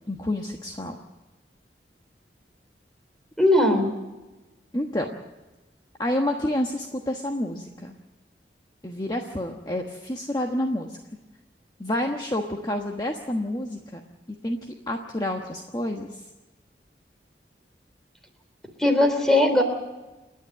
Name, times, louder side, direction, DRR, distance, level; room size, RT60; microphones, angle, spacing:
voice 1, 0.1-1.0 4.7-5.1 6.0-7.9 8.8-11.0 11.8-14.0 14.3-14.6 14.9-16.2, left 1 dB, 25° left, 2 dB, 1.2 m, -29 dB
voice 2, 3.4-3.9 18.8-19.6, left 1 dB, 5° left, 4 dB, 3.2 m, -19 dB
29.0 x 10.5 x 9.3 m, 1.2 s
head